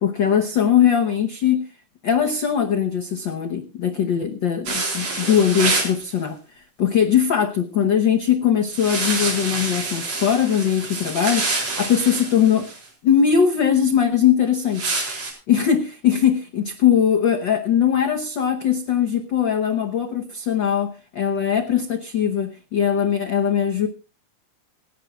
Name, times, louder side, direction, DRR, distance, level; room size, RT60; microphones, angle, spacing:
voice 1, 0.0-1.6 2.0-12.7 13.0-15.0 15.5-23.9, left 8 dB, 85° left, 7 dB, 1.0 m, -20 dB
sound 1, 4.7-6.0 8.7-12.8 14.7-15.3, right 3 dB, 55° right, 5.1 m, -26 dB
27.5 x 10.0 x 2.3 m, 0.30 s
omnidirectional pair, 3.6 m